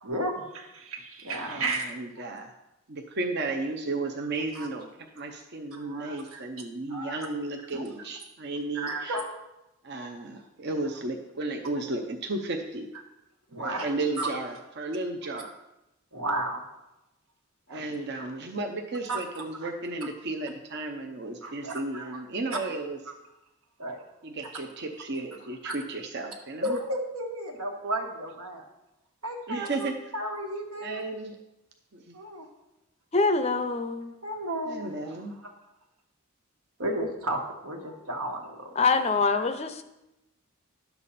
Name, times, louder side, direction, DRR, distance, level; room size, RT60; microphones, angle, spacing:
voice 1, 0.0-1.9 4.5-4.7 5.7-6.4 6.9-7.3 7.7-7.8 8.7-9.2 13.5-13.8 14.2-14.3 16.1-16.6 17.7-17.8 19.1-19.2 19.6-19.7 21.4-22.2 23.1-23.2 23.8-24.0 25.6-25.7 26.6-28.6 29.2-31.0 32.1-32.5 34.2-34.9 35.4-35.5 36.8-39.0 39.3-39.5, right 1 dB, 80° right, 2 dB, 1.6 m, -33 dB
voice 2, 1.4-2.5 2.9-4.9 5.2-9.2 9.8-12.9 13.6-15.5 17.7-23.0 24.2-26.8 29.5-29.9 30.8-31.4 31.9-32.1 34.7-35.3, right 2 dB, 50° right, 3 dB, 0.7 m, -34 dB
voice 3, 33.1-34.1 38.8-39.8, left 4 dB, 30° left, 9 dB, 0.5 m, -24 dB
11.0 x 7.0 x 4.2 m, 0.94 s
head